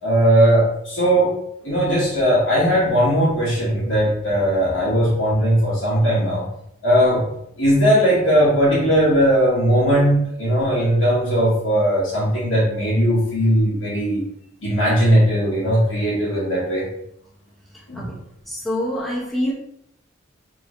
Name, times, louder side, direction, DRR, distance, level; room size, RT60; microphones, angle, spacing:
voice 1, 0.0-1.3 1.6-6.4 6.8-7.2 7.6-14.2 14.6-16.9 17.9-18.0, equal, 85° left, -9 dB, 1.5 m, -18 dB
voice 2, 18.5-19.5, equal, ahead, -5 dB, 1.1 m, -25 dB
3.8 x 3.1 x 3.1 m, 0.74 s
head